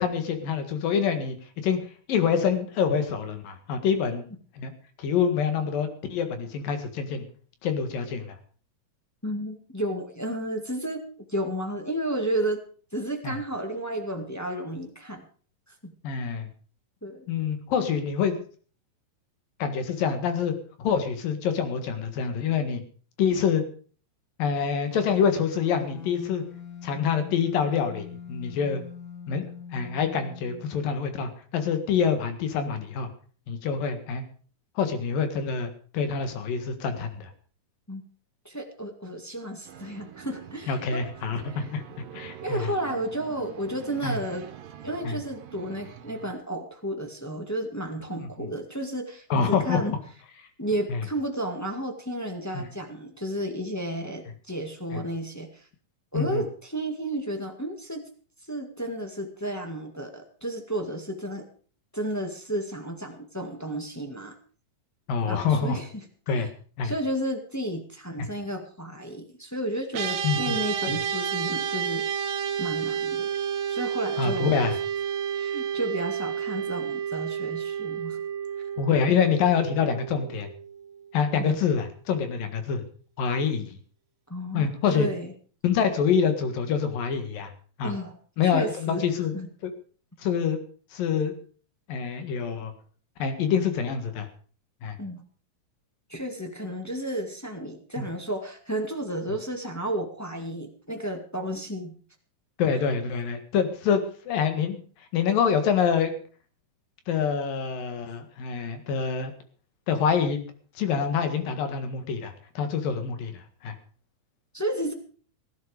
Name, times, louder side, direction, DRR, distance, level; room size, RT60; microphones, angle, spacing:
voice 1, 0.0-1.3 1.6-1.8 2.1-4.2 4.6-4.7 5.0-7.2 7.6-8.3 13.2-13.3 16.0-16.5 17.3-18.4 19.6-22.8 23.2-23.6 24.4-26.4 26.8-28.8 29.3-29.5 29.7-33.1 33.5-34.2 34.8-37.3 40.7-42.7 44.0-44.2 45.0-45.2 48.2-48.5 49.3-49.8 50.9-51.0 52.5-52.7 54.9-55.0 56.1-56.4 65.1-65.8 66.3-66.5 66.8-66.9 70.2-70.6 70.9-71.0 74.2-74.8 78.8-80.5 81.1-82.8 83.2-83.8 84.5-85.1 85.6-87.5 87.8-87.9 88.4-89.3 89.6-89.7 90.2-90.6 90.9-91.3 91.9-92.7 93.2-94.3 94.8-95.0 98.0-98.1 102.6-104.8 105.1-106.1 107.1-109.3 109.9-110.4 110.8-113.7, left 6 dB, 90° left, 8 dB, 3.5 m, -26 dB
voice 2, 9.2-12.6 12.9-15.2 15.7-15.9 17.0-17.3 37.9-38.0 38.4-41.0 41.3-41.7 42.4-44.4 44.8-49.9 50.6-55.6 56.1-58.1 58.5-61.4 61.9-64.3 65.2-65.9 66.3-66.5 66.8-72.0 72.6-73.3 73.7-74.6 75.3-78.2 79.1-79.2 81.4-81.6 84.3-85.3 87.8-88.2 88.4-89.1 89.3-89.5 95.0-95.2 96.1-102.0 114.5-114.9, right 1 dB, 10° left, 2 dB, 0.9 m, -32 dB
sound 1, 24.9-31.0, left 6 dB, 55° left, 1.3 m, -42 dB
sound 2, 39.7-46.4, right 10 dB, 85° right, 3.2 m, -45 dB
sound 3, 69.9-81.4, right 8 dB, 65° right, 2.4 m, -31 dB
17.0 x 11.5 x 5.0 m, 0.42 s
omnidirectional pair, 3.9 m